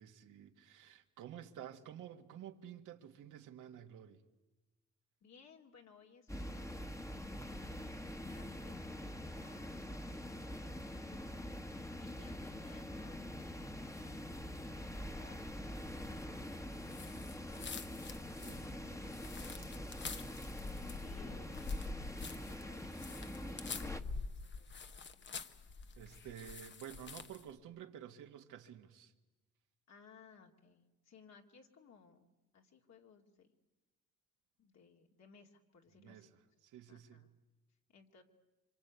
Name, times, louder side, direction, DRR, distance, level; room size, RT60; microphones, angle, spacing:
voice 1, 0.0-4.2 18.4-18.8 26.0-29.1 36.0-36.3 36.6-37.3, right 10 dB, 85° right, 1.8 m, -51 dB
voice 2, 5.2-15.5 15.8-17.7 18.3-20.2 20.6-25.5 29.9-32.3 32.5-33.5 34.6-36.3 36.9-37.3 37.9-38.2, left 5 dB, 60° left, 2.6 m, -63 dB
sound 1, 6.3-24.0, left 1 dB, 10° left, 1.4 m, -45 dB
sound 2, 16.8-27.5, left 4 dB, 40° left, 1.1 m, -46 dB
26.5 x 25.5 x 8.3 m
cardioid pair, 90°, 30 cm